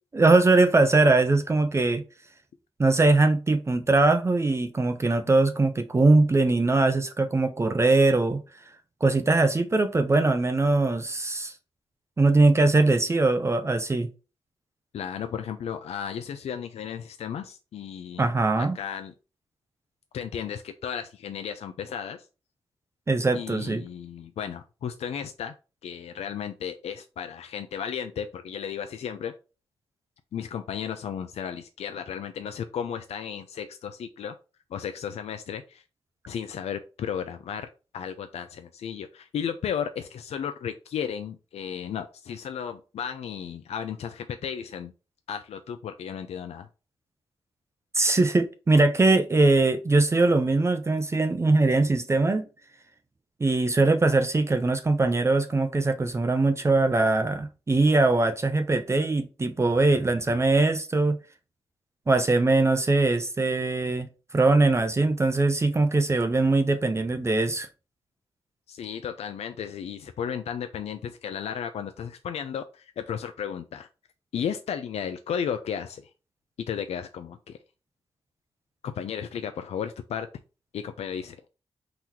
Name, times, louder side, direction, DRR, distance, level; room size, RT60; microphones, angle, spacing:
voice 1, 0.1-2.0 2.8-8.4 9.0-11.5 12.2-14.1 18.2-18.8 23.1-23.8 47.9-52.4 53.4-61.2 62.1-64.1 64.3-67.7, right 3 dB, 25° right, 0.5 m, -21 dB
voice 2, 14.9-19.1 20.1-22.3 23.3-25.5 25.8-29.3 30.3-34.3 34.7-35.8 36.3-37.7 37.9-44.9 45.3-46.7 68.7-73.9 74.3-76.1 76.7-77.6 78.8-80.3 80.7-81.4, left 8 dB, 85° left, 0.4 m, -34 dB
3.9 x 2.9 x 4.5 m
wide cardioid pair, 100°, 10 cm